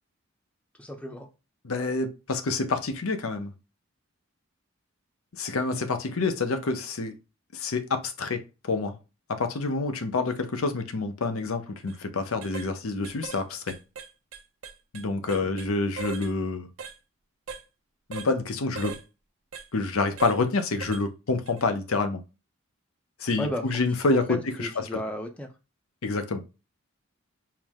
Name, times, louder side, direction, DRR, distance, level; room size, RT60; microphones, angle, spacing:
voice 1, 0.8-1.3 15.2-15.3 23.4-23.6 24.1-25.5, equal, 5° left, 0.5 m, -34 dB
voice 2, 1.6-3.5 5.4-7.1 7.5-8.4 8.7-8.9 9.3-13.7 14.9-16.7 18.1-19.0 19.7-22.2 23.2-24.7 26.0-26.4, left 3 dB, 80° left, 0.7 m, -27 dB
sound 1, 11.8-12.0 12.4-12.7 13.0-13.4 13.7-15.7 16.0-16.3 16.8-17.0 17.5-17.6 18.1-18.3 18.8-19.0 19.5-19.7 20.2-20.4 20.8-21.0 21.5-21.6, right 5 dB, 70° right, 0.6 m, -39 dB
4.6 x 2.1 x 3.5 m
head